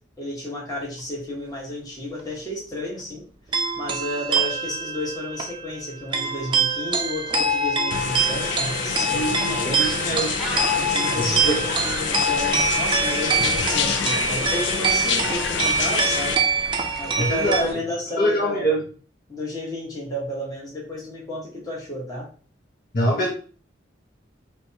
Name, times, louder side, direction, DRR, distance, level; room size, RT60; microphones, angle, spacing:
voice 1, 0.2-3.2 3.7-9.8 10.7-16.4 17.0-18.7 19.3-22.3, left 1 dB, 20° left, -4 dB, 1.3 m, -32 dB
sound 1, 3.5-17.6, right 4 dB, 25° right, 0.5 m, -24 dB
sound 2, 7.9-16.4, left 7 dB, 70° left, 0.4 m, -27 dB
voice 2, 9.1-10.4 11.1-11.6 17.2-17.8 18.2-18.8 22.9-23.3, right 1 dB, 50° left, -2 dB, 0.8 m, -24 dB
sound 3, 9.8-17.7, equal, ahead, 0.8 m, -38 dB
4.4 x 2.3 x 2.8 m, 0.40 s
head